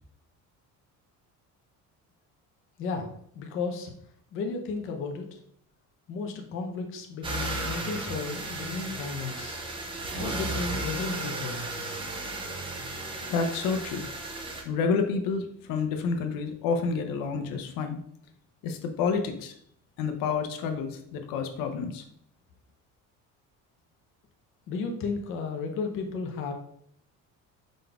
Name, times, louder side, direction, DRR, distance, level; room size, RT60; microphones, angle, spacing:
voice 1, 3.3-3.9 4.3-5.4 6.1-9.6 10.2-11.6 24.7-26.5, left 4 dB, 40° left, 3 dB, 0.5 m, -33 dB
sound 1, 7.2-14.6, right 2 dB, 15° right, 0.4 m, -34 dB
voice 2, 13.3-14.1 14.6-18.0 18.6-19.6 20.0-22.0, left 5 dB, 85° left, 6 dB, 0.7 m, -29 dB
5.0 x 3.8 x 2.3 m, 0.68 s
cardioid pair, 180°, 33 cm